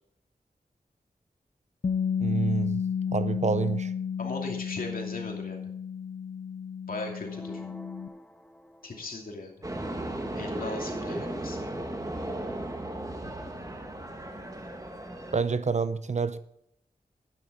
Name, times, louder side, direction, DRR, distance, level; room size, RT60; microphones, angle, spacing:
Bass guitar, 1.8-8.1, left 7 dB, 45° left, 0.6 m, -32 dB
voice 1, 2.2-2.8 3.1-3.9 15.3-16.4, right 5 dB, 50° right, 13 dB, 0.7 m, -27 dB
voice 2, 4.2-5.6 6.9-7.6 8.8-9.5 10.3-11.6, left 2 dB, 70° left, 1 dB, 2.6 m, -37 dB
sound 1, 7.3-9.3, equal, 5° left, 1.0 m, -47 dB
sound 2, 9.6-15.4, right 1 dB, 20° right, 1.6 m, -36 dB
12.0 x 9.9 x 3.6 m, 0.74 s
wide cardioid pair, 75°, 15 cm